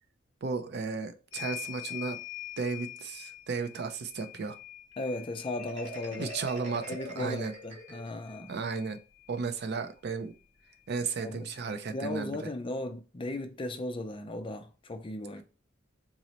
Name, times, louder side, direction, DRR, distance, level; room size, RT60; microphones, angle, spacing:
voice 1, 0.4-2.2 2.6-4.6 6.2-7.5 8.5-9.0 9.3-10.3 10.9-12.4, right 4 dB, 60° right, 0.4 m, -34 dB
sound 1, 1.3-9.4 10.7-10.8 11.1-12.2, left 14 dB, 75° left, 0.7 m, -45 dB
voice 2, 5.0-6.3 6.9-8.5 11.2-11.5 11.9-15.4, left 2 dB, 25° left, 0.4 m, -36 dB
Marimba xylophone, 5.6-8.4, right 1 dB, 40° right, 0.8 m, -43 dB
3.8 x 2.0 x 2.9 m
head